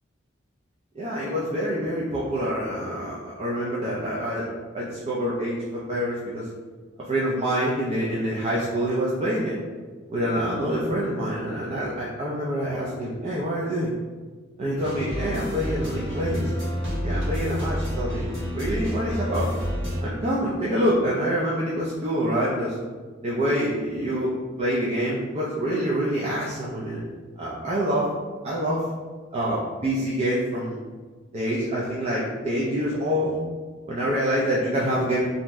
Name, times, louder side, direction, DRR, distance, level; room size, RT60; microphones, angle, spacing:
voice 1, 0.9-6.5 7.1-9.6 10.1-13.9 14.6-16.5 17.0-19.5 20.0-22.8 23.2-24.3 24.6-27.0 27.4-28.1 28.4-28.8 29.3-30.8 31.3-33.4 33.9-35.3, equal, 30° right, -6 dB, 0.4 m, -26 dB
sound 1, 14.8-20.0, equal, 65° right, 1.1 m, -29 dB
2.7 x 2.0 x 3.4 m, 1.4 s
head